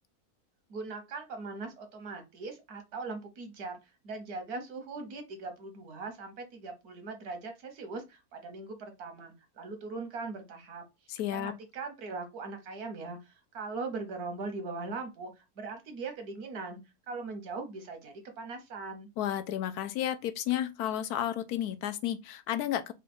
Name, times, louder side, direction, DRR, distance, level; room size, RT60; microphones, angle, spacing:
voice 1, 0.7-10.8 11.3-16.8 17.1-19.1, right 3 dB, 80° right, 1.6 m, -40 dB
voice 2, 11.1-11.5 19.2-22.9, left 11 dB, 90° left, 1.2 m, -32 dB
4.7 x 2.4 x 4.2 m
omnidirectional pair, 1.6 m